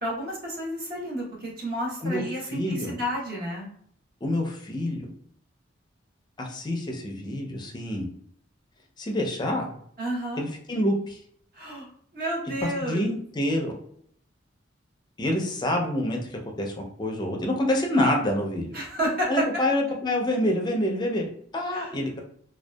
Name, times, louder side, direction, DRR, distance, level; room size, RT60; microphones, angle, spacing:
voice 1, 0.0-3.7 10.0-10.4 11.5-11.9 12.1-13.1 18.7-19.4 21.7-22.0, right 1 dB, 50° right, -3 dB, 0.9 m, -31 dB
voice 2, 2.5-3.0 4.2-5.1 6.4-8.1 9.0-9.8 10.4-11.2 12.8-13.7 15.2-18.8 19.3-22.2, left 1 dB, 20° left, 1 dB, 0.4 m, -27 dB
2.6 x 2.2 x 2.2 m, 0.63 s
head